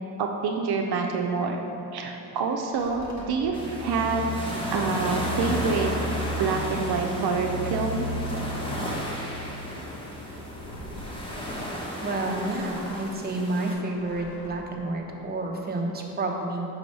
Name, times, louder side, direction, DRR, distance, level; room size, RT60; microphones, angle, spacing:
voice 1, 0.2-1.6 1.9-4.3 4.7-5.9 6.4-8.1, right 4 dB, 70° right, 2 dB, 0.6 m, -27 dB
sound 1, 2.7-3.3 5.7-6.7 7.9-8.9 10.6-11.3 12.2-13.2 13.9-14.6, equal, 45° left, 1.1 m, -45 dB
sound 2, 3.4-11.7, equal, 65° left, 0.6 m, -36 dB
sound 3, 3.5-13.7, equal, 15° left, 1.1 m, -34 dB
voice 2, 12.0-16.7, right 2 dB, 25° right, 0 dB, 0.8 m, -30 dB
6.2 x 3.0 x 5.2 m, 2.9 s
cardioid pair, 80°, 40 cm